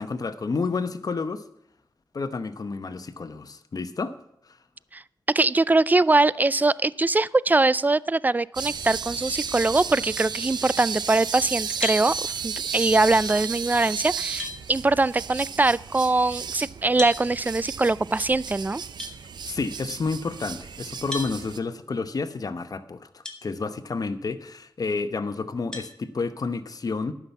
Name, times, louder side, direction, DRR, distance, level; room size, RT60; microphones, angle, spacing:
voice 1, 0.0-1.4 2.1-4.1 19.5-27.1, left 4 dB, 55° left, 0.9 m, -30 dB
voice 2, 5.3-12.1 12.4-18.8, right 2 dB, 25° right, 0.3 m, -22 dB
sound 1, 8.5-21.6, right 6 dB, 80° right, 0.6 m, -34 dB
sound 2, 11.8-12.1 13.7-13.8 14.4-14.6 17.0-17.2 19.0-19.1 21.1-21.3 23.2-23.4 24.0-24.1 25.7-25.9, left 2 dB, 10° left, 2.2 m, -32 dB
11.0 x 5.9 x 8.1 m
cardioid pair, 50°, 7 cm